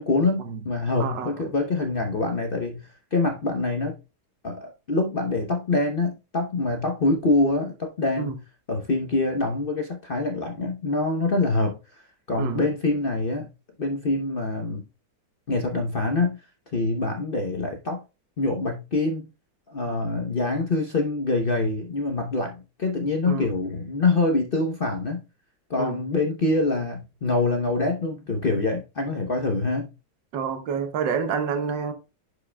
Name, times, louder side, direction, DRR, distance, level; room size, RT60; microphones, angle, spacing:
voice 1, 0.0-4.0 4.4-8.3 8.7-11.8 12.3-13.5 13.8-14.8 15.5-16.4 16.7-18.0 18.4-19.3 19.7-25.2 25.7-29.9, left 2 dB, 45° left, 0.7 m, -25 dB
voice 2, 1.0-1.5 8.2-8.4 12.4-12.7 23.3-23.5 25.8-26.0 30.3-31.9, right 6 dB, 85° right, 1.8 m, -28 dB
10.5 x 5.1 x 2.2 m
omnidirectional pair, 1.9 m